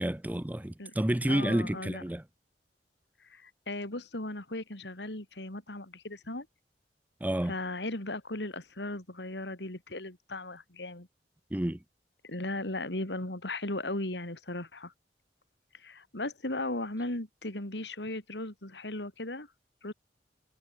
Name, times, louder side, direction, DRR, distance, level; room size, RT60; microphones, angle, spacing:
voice 1, 0.0-2.2 7.2-7.5 11.5-11.8, right 1 dB, 10° right, 0.6 m, -30 dB
voice 2, 1.3-2.0 3.3-6.5 7.5-11.1 12.2-14.9 15.7-19.5 19.8-19.9, left 2 dB, 75° left, 3.6 m, -37 dB
head